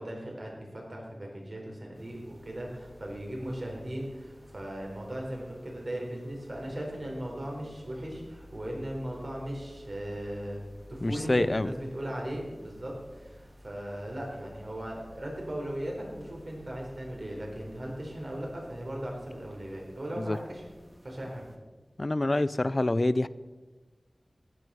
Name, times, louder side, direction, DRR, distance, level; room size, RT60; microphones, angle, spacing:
voice 1, 0.0-10.6 10.9-20.6 21.0-21.4, right 1 dB, 55° right, -1 dB, 4.1 m, -38 dB
sound 1, 1.9-21.6, equal, 10° right, 1.7 m, -53 dB
voice 2, 11.0-11.7 20.2-20.4 22.0-23.3, left 2 dB, 40° left, 16 dB, 0.4 m, -26 dB
14.0 x 9.5 x 5.6 m, 1.3 s
wide cardioid pair, 55°, 0 cm